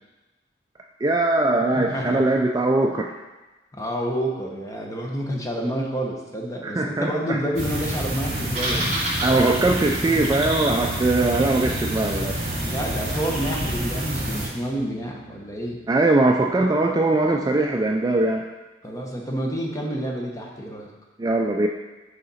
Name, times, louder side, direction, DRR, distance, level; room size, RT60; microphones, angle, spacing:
voice 1, 1.0-3.1 6.6-7.4 9.2-12.4 15.9-18.4 21.2-21.7, right 2 dB, 20° right, 1 dB, 0.3 m, -21 dB
voice 2, 1.7-2.2 3.7-9.1 12.6-15.8 18.8-20.9, equal, 20° left, 0 dB, 0.9 m, -29 dB
sound 1, 7.6-14.5, right 1 dB, 40° right, 2.3 m, -27 dB
sound 2, 11.0-16.2, left 3 dB, 40° left, 0.5 m, -40 dB
6.5 x 4.9 x 4.1 m, 1.1 s
head